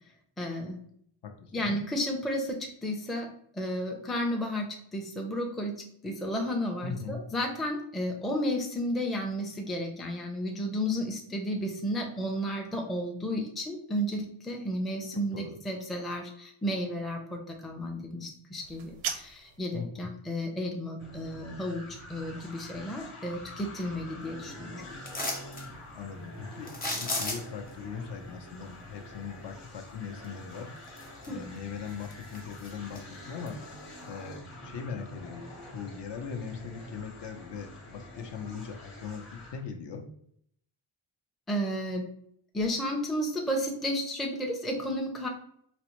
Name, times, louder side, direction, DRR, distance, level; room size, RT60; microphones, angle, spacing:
voice 1, 0.4-0.8 1.5-3.3 3.5-5.8 6.0-24.8 31.3-31.4 41.5-42.1 42.5-45.3, equal, ahead, 1 dB, 0.4 m, -32 dB
voice 2, 1.4-1.8 6.8-7.2 15.1-15.6 19.7-20.1 25.9-30.7 31.3-33.6 34.1-35.4 35.7-40.0, left 6 dB, 55° left, 4 dB, 0.6 m, -40 dB
sound 1, 18.6-19.6, right 7 dB, 80° right, 0.6 m, -37 dB
sound 2, 21.0-39.6, left 1 dB, 90° left, 1.2 m, -46 dB
sound 3, 25.0-25.7 26.7-27.7 30.2-30.3 30.8-31.5 31.9-33.0 33.5-33.6, left 2 dB, 20° left, 0.8 m, -34 dB
4.0 x 2.1 x 2.9 m, 0.67 s
cardioid pair, 105°, 50 cm